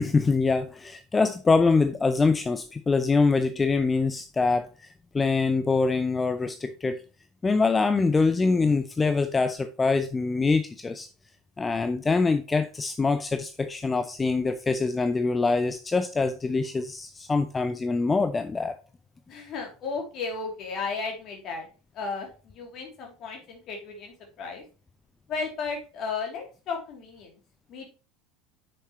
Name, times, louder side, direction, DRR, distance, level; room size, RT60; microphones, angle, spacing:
voice 1, 0.0-7.0 7.4-11.1 11.6-18.8, left 4 dB, 20° left, 0.6 m, -24 dB
voice 2, 19.3-21.6 22.0-22.3 22.5-24.6 25.3-27.3 27.7-27.9, left 4 dB, 45° left, 3.0 m, -34 dB
7.7 x 6.5 x 3.1 m
figure-of-eight pair, 70°, 0 cm